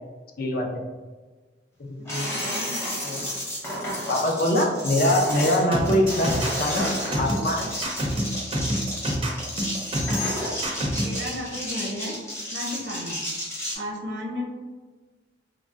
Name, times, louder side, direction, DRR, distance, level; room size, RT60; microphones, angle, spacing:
voice 1, 0.4-0.8 1.8-2.3 3.0-3.2 4.1-6.9 7.2-7.7, left 1 dB, 50° left, 2 dB, 0.4 m, -23 dB
sound 1, 2.0-13.7, left 1 dB, 15° left, 0.7 m, -31 dB
voice 2, 2.1-2.7 11.0-12.2 12.5-13.2 13.7-14.5, left 1 dB, 85° right, -1 dB, 0.7 m, -33 dB
sound 2, 5.7-11.2, right 1 dB, 30° right, 0.4 m, -27 dB
3.4 x 2.0 x 2.4 m, 1.3 s
head